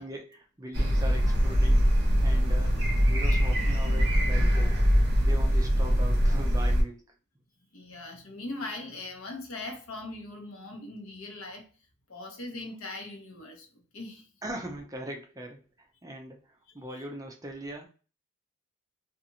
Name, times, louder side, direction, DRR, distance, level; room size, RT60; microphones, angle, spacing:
voice 1, 0.0-1.9 2.2-2.8 3.1-4.8 5.2-7.1 14.4-17.9, right 1 dB, 15° right, 0.4 m, -40 dB
sound 1, 0.7-6.8, equal, 50° right, 0.9 m, -23 dB
voice 2, 7.7-11.7 12.1-14.3 16.7-17.1, left 2 dB, 75° left, 0.8 m, -40 dB
2.8 x 2.4 x 2.6 m
head